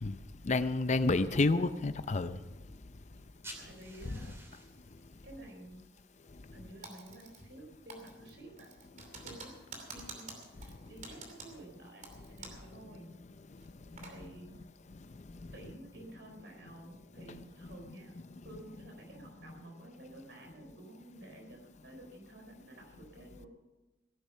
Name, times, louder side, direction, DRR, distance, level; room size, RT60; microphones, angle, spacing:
voice 1, 0.4-2.4 4.1-4.2 13.5-13.6 13.9-14.1 14.9-15.5, left 3 dB, 40° left, 12 dB, 0.6 m, -30 dB
voice 2, 1.1-1.7 3.6-4.4 5.2-5.8 6.5-8.7 9.2-13.1 14.0-14.6 15.5-23.5, right 1 dB, 70° right, 1 dB, 4.0 m, -52 dB
sound 1, 3.2-8.4, right 1 dB, 15° right, 2.6 m, -55 dB
Typing, 6.8-7.6 7.9-12.7 13.0-13.1 13.6-14.2, right 3 dB, 45° right, 2.8 m, -49 dB
17.0 x 10.5 x 5.6 m, 1.1 s
head